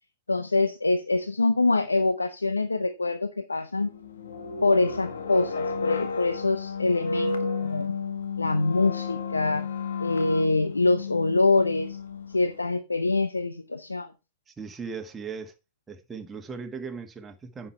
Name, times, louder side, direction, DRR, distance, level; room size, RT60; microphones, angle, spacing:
voice 1, 0.3-3.9 4.6-7.9 8.4-9.7 10.0-12.0 12.3-14.1, left 3 dB, 90° left, 0.7 m, -25 dB
sound 1, 3.8-12.6, left 4 dB, 75° left, 1.4 m, -32 dB
voice 2, 14.5-15.5 15.9-17.7, right 5 dB, 15° right, 1.5 m, -38 dB
9.6 x 6.1 x 4.4 m
figure-of-eight pair, 105°, 0 cm